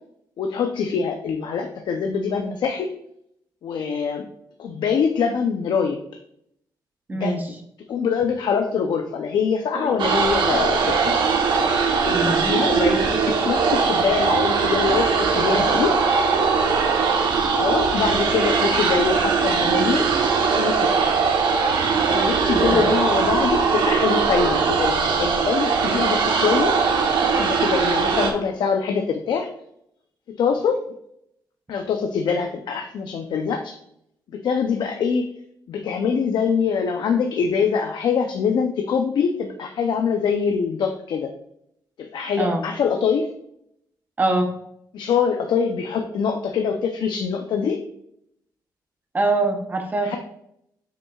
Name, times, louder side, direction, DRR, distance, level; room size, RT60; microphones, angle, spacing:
voice 1, 0.4-2.9 3.6-4.2 4.6-6.0 7.1-7.3 7.9-11.2 12.0-15.9 17.5-20.1 20.5-21.2 22.1-26.7 27.3-29.5 30.3-30.8 31.7-33.7 34.3-35.3 35.7-41.3 42.0-43.3 44.9-47.8 50.0-50.2, left 6 dB, 70° left, 4 dB, 0.6 m, -24 dB
voice 2, 7.1-7.5 9.7-10.0 10.3-10.4 12.1-12.5 22.5-22.9 42.4-42.6 44.2-44.5 49.1-50.2, right 2 dB, 25° right, 3 dB, 0.9 m, -23 dB
sound 1, 10.0-28.3, right 5 dB, 85° right, 1.1 m, -20 dB
7.1 x 6.0 x 2.4 m, 0.74 s
wide cardioid pair, 150°, 8 cm